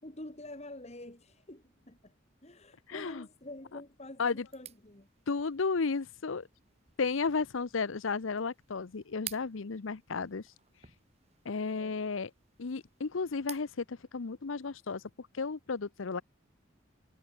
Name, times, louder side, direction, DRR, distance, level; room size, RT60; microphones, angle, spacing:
voice 1, 0.0-2.1 2.4-5.1 11.7-12.0, left 1 dB, 35° left, 3.0 m, -47 dB
voice 2, 2.9-3.3 4.2-4.4 5.3-6.5 7.0-10.4 11.4-12.3 12.6-15.0 15.3-16.2, left 4 dB, 75° left, 0.7 m, -33 dB
sound 1, 4.5-13.8, right 10 dB, 30° right, 5.8 m, -52 dB
head